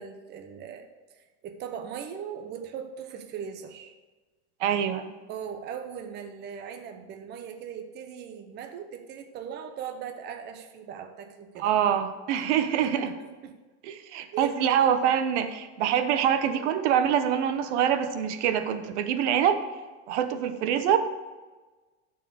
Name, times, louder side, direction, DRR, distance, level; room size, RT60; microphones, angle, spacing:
voice 1, 0.0-3.9 5.3-11.7 12.4-13.6 14.3-14.6, right 7 dB, 30° right, 6 dB, 0.8 m, -39 dB
voice 2, 4.6-5.1 11.6-13.1 13.8-19.6 20.1-21.0, right 9 dB, 75° right, 9 dB, 1.0 m, -25 dB
12.5 x 4.7 x 6.2 m, 1.3 s
supercardioid pair, 150°, 35 cm